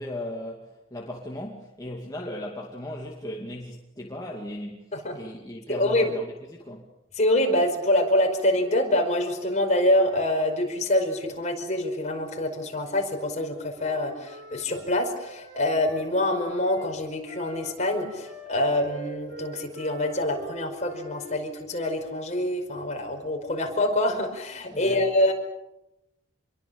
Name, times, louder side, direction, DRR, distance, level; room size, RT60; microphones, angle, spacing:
voice 1, 0.0-6.9 24.7-25.1, left 1 dB, 20° left, 2.4 m, -37 dB
voice 2, 5.7-6.1 7.2-25.3, left 1 dB, 35° left, 5.2 m, -25 dB
Wind instrument woodwind instrument, 13.3-16.9 17.2-21.4, right 1 dB, 75° right, 7.2 m, -44 dB
27.5 x 23.0 x 7.1 m
head